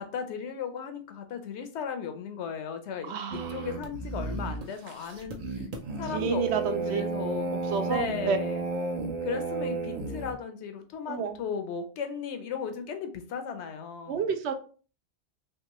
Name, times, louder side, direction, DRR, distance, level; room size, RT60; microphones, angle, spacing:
voice 1, 0.0-5.6 6.0-7.5 7.9-8.7 9.2-14.2, left 7 dB, 80° left, 7 dB, 1.0 m, -36 dB
voice 2, 3.0-3.7 6.1-7.0 7.7-8.4 11.1-11.4 14.1-14.5, right 6 dB, 75° right, 8 dB, 0.8 m, -30 dB
sound 1, 3.3-10.3, right 3 dB, 50° right, 0.5 m, -33 dB
3.5 x 2.8 x 3.0 m, 0.39 s
omnidirectional pair, 1.1 m